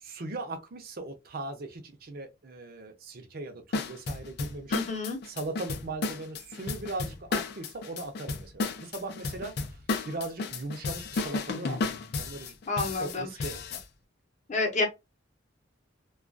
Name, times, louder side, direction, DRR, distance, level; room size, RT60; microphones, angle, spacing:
voice 1, 0.0-4.8 5.3-9.5 10.1-11.8 12.1-12.5 13.0-13.8, right 2 dB, 50° right, 0.6 m, -39 dB
sound 1, 3.7-13.8, left 3 dB, 55° left, 0.4 m, -33 dB
voice 2, 4.7-5.2 12.7-13.3 14.5-14.8, left 3 dB, 40° left, 0.8 m, -29 dB
2.3 x 2.3 x 2.4 m
head